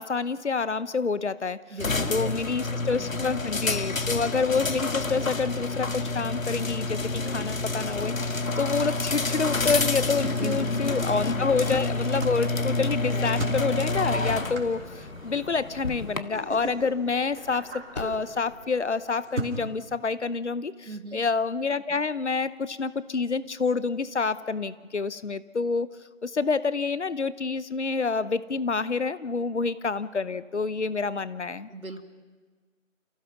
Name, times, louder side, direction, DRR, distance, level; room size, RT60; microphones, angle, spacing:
voice 1, 0.0-1.8 2.1-25.9 26.2-31.7, left 4 dB, 55° left, 16 dB, 0.8 m, -28 dB
voice 2, 1.7-2.3 2.6-3.3 10.2-11.2 20.9-21.2 31.7-32.0, right 3 dB, 90° right, 7 dB, 2.3 m, -39 dB
sound 1, 1.8-16.2, left 3 dB, 75° left, 1.5 m, -28 dB
Drawer open or close, 9.1-19.0, left 3 dB, 30° left, 1.8 m, -48 dB
sound 2, 11.9-19.6, right 2 dB, 55° right, 3.4 m, -40 dB
29.0 x 15.5 x 6.0 m, 1.5 s
figure-of-eight pair, 165°, 41 cm